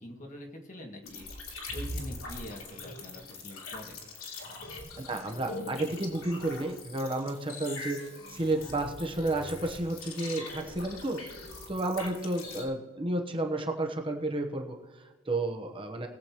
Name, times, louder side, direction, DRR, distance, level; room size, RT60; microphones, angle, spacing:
voice 1, 0.0-4.1, left 1 dB, 40° left, 1 dB, 1.8 m, -45 dB
sound 1, 1.0-12.7, left 2 dB, 85° left, 2.9 m, -42 dB
voice 2, 5.0-16.1, right 2 dB, 25° right, 3 dB, 1.0 m, -32 dB
21.0 x 7.8 x 3.0 m, 1.3 s
head